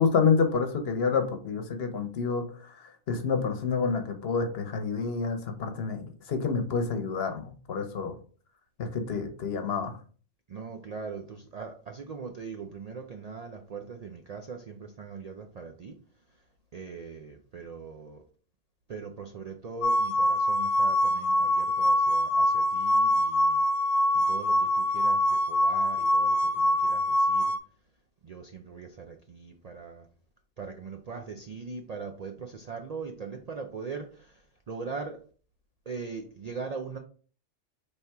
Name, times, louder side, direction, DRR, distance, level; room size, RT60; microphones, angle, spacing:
voice 1, 0.0-6.0 6.3-8.1 8.8-9.9, left 5 dB, 60° left, 7 dB, 1.0 m, -28 dB
voice 2, 10.5-16.0 16.7-18.2 18.9-23.6 24.1-27.5 28.2-30.1 30.6-34.1 34.7-35.2 35.9-37.0, right 5 dB, 55° right, 4 dB, 0.4 m, -40 dB
sound 1, 19.8-27.6, left 1 dB, 85° left, 1.0 m, -24 dB
4.4 x 3.4 x 3.4 m, 0.41 s
omnidirectional pair, 1.2 m